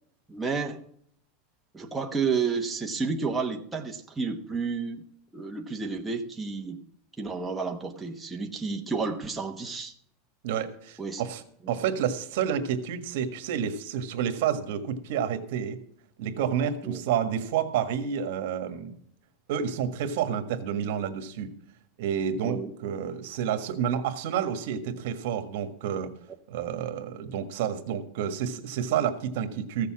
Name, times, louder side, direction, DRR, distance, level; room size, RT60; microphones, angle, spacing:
voice 1, 0.3-0.8 1.7-5.0 5.3-6.8 7.2-9.9 11.0-11.2 16.8-17.0 22.4-22.7, right 4 dB, 10° right, 1 dB, 1.1 m, -31 dB
voice 2, 10.4-15.8 16.2-19.0 19.5-21.5 22.0-26.1 26.5-29.9, right 8 dB, 70° right, 9 dB, 1.6 m, -29 dB
15.0 x 6.8 x 6.1 m, 0.64 s
supercardioid pair, 160°, 0 cm